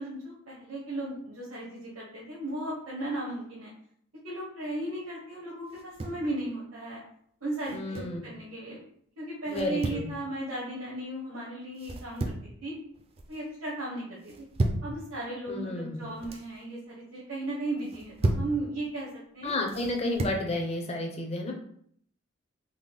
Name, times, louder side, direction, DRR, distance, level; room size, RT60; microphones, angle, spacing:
voice 1, 0.0-3.7 4.2-7.0 7.4-8.8 9.2-12.7 13.3-14.5 14.8-19.1 19.3-19.5, right 2 dB, 85° right, -6 dB, 0.9 m, -36 dB
sound 1, 5.7-6.3 7.6-8.2 9.5-10.1 11.8-12.5 12.9-13.4 14.2-14.9 16.0-16.5 17.8-18.5 19.7-20.4, right 2 dB, 30° right, 0.3 m, -33 dB
voice 2, 7.7-8.2 9.5-10.1 15.5-15.9 19.4-21.5, left 2 dB, 30° left, 1 dB, 0.6 m, -31 dB
3.7 x 2.1 x 3.3 m, 0.65 s
head